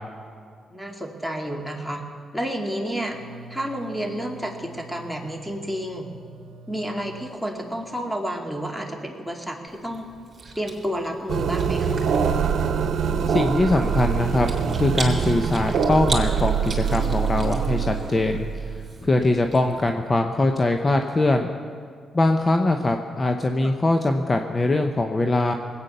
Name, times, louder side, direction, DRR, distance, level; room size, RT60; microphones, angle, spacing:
voice 1, 0.7-2.0 2.3-3.2 3.5-6.1 6.7-10.1 10.6-12.0 23.6-23.7, equal, ahead, 2 dB, 2.4 m, -30 dB
sound 1, 2.9-8.2, right 3 dB, 90° right, 0.8 m, -47 dB
Chewing mastication, 9.7-19.9, right 3 dB, 40° right, 3.3 m, -39 dB
sound 2, 11.3-19.2, right 6 dB, 65° right, 1.1 m, -24 dB
voice 2, 13.3-14.5 14.7-21.5 22.1-25.5, left 2 dB, 30° left, 5 dB, 0.9 m, -22 dB
20.0 x 8.9 x 6.8 m, 2.2 s
supercardioid pair, 60°, 0 cm